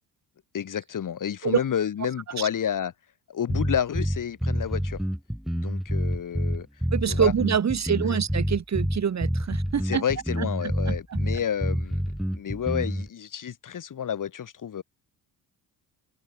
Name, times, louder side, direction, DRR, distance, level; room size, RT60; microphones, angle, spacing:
voice 1, 0.5-2.9 3.3-5.0 5.5-6.7 7.1-7.3 9.8-12.0 12.3-14.8, left 8 dB, 50° left, 7.3 m, -30 dB
sound 1, 3.5-13.1, equal, ahead, 2.3 m, -28 dB
voice 2, 6.9-10.0 10.4-11.2, right 7 dB, 40° right, 3.5 m, -26 dB
open air
cardioid pair, 115°, 40 cm